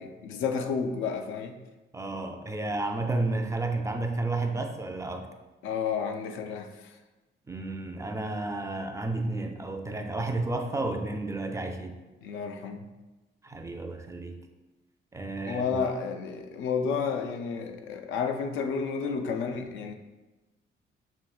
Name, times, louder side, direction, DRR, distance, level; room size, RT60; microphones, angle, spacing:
voice 1, 0.0-1.6 5.6-6.9 12.2-12.9 15.5-19.9, left 6 dB, 85° left, 6 dB, 0.4 m, -31 dB
voice 2, 1.9-5.3 7.5-12.0 13.4-14.4 15.1-15.8, right 2 dB, 15° right, 5 dB, 0.4 m, -32 dB
5.8 x 2.8 x 2.3 m, 1.1 s
cardioid pair, 90°, 20 cm